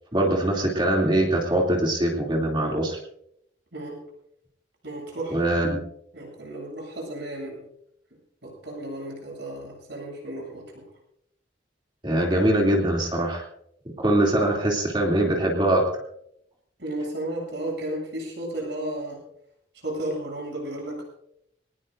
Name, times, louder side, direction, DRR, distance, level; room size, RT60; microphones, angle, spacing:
voice 1, 0.1-3.0 5.3-5.8 12.0-13.4 14.0-15.9, right 1 dB, 25° right, -1 dB, 2.8 m, -22 dB
voice 2, 4.8-5.5 6.1-7.6 8.4-10.8 16.8-19.2 19.7-21.0, right 1 dB, 70° right, -1 dB, 8.0 m, -33 dB
22.0 x 19.5 x 2.6 m, 0.73 s
head